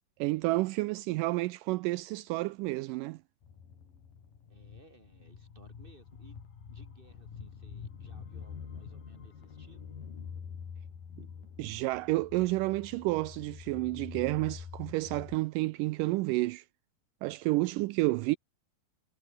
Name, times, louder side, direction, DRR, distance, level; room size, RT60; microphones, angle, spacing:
voice 1, 0.2-3.2 11.6-16.6 17.2-18.4, right 20 dB, 80° right, 1.9 m, -30 dB
sound 1, 3.4-15.4, left 6 dB, 65° left, 5.3 m, -46 dB
voice 2, 4.5-6.4 6.7-9.8, right 1 dB, 10° right, 7.5 m, -59 dB
omnidirectional pair, 4.3 m